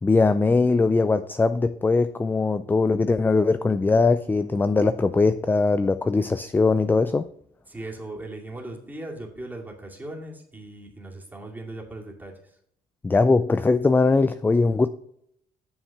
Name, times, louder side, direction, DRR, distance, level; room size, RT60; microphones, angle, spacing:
voice 1, 0.0-7.3 13.0-14.9, left 3 dB, 10° left, 0.3 m, -21 dB
voice 2, 7.7-12.6, right 2 dB, 10° right, 2.4 m, -38 dB
8.8 x 7.0 x 3.5 m
cardioid pair, 110°, 17 cm